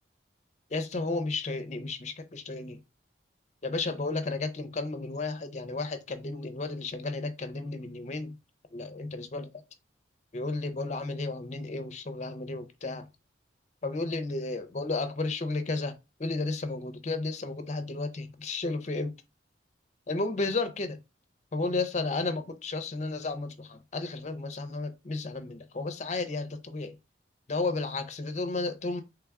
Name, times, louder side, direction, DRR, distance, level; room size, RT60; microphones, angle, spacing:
voice 1, 0.7-2.8 3.6-8.3 8.7-9.5 10.3-13.1 13.8-15.9 16.2-19.1 20.1-21.0 21.5-26.9 27.5-29.0, left 3 dB, 35° left, 0.5 m, -33 dB
3.3 x 2.3 x 3.4 m
head